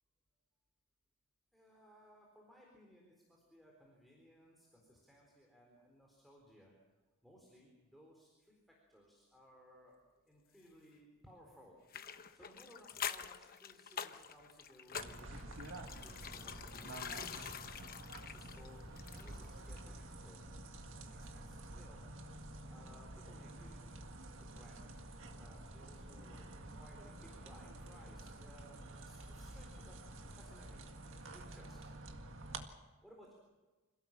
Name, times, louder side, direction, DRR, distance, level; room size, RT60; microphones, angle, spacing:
voice 1, 1.5-6.7 7.2-10.0 10.3-11.8 12.3-20.5 21.0-22.1 22.7-24.9 25.4-32.7 33.0-33.3, equal, ahead, -2 dB, 4.0 m, -62 dB
sound 1, 11.9-19.5 19.8-19.9, left 8 dB, 45° left, 1.0 m, -46 dB
sound 2, 14.9-32.6, right 2 dB, 60° right, 1.9 m, -50 dB
26.0 x 17.0 x 7.6 m, 1.2 s
head